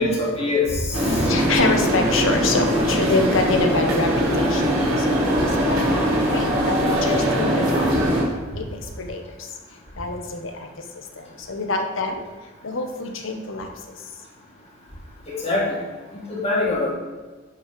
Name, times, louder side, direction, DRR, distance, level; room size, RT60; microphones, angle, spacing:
voice 1, 0.0-1.2 15.3-15.8 16.3-16.9, left 2 dB, 30° left, -5 dB, 1.5 m, -23 dB
sound 1, 0.9-8.2, equal, 80° right, 2.2 m, -21 dB
voice 2, 1.1-5.3 5.6-5.8 6.3-7.9 8.5-8.7 9.0-9.2 10.0-10.7 11.2-12.2 12.6-13.7, left 3 dB, 65° left, 4 dB, 0.9 m, -26 dB
8.3 x 3.3 x 5.0 m, 1.4 s
head